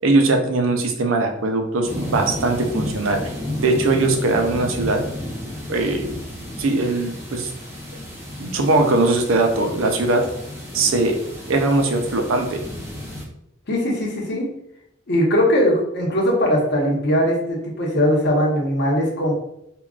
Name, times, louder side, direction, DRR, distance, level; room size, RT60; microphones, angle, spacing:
voice 1, 0.0-5.0 5.7-6.1 6.6-7.5 8.4-10.2 10.7-11.2 11.5-12.6, right 2 dB, 75° right, 4 dB, 0.5 m, -20 dB
sound 1, 1.8-13.2, left 1 dB, 10° right, 0.6 m, -32 dB
voice 2, 13.7-14.5 15.1-19.3, equal, 55° left, -2 dB, 0.9 m, -20 dB
3.6 x 2.3 x 2.3 m, 0.77 s
head